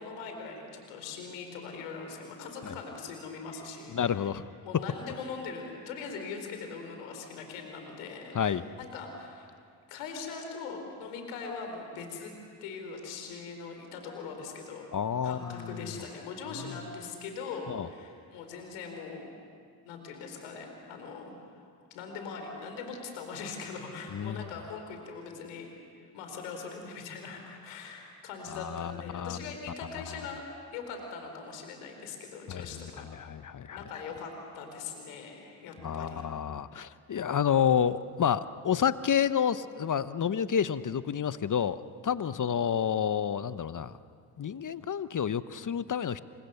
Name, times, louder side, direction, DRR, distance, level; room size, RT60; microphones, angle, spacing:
voice 1, 0.0-4.3 4.6-9.5 9.9-12.3 12.6-14.9 15.2-19.3 19.8-30.4 30.7-33.0 33.7-36.3 42.3-42.4, left 5 dB, 85° left, 4 dB, 4.6 m, -41 dB
voice 2, 3.9-4.5 4.7-4.8 8.3-8.6 14.9-15.4 15.7-15.8 16.7-16.8 17.7-17.9 24.1-24.5 28.5-29.4 32.5-33.8 35.8-43.9 44.4-46.2, left 8 dB, 40° left, 14 dB, 1.1 m, -29 dB
29.0 x 28.5 x 7.0 m, 2.2 s
hypercardioid pair, 50°, 48 cm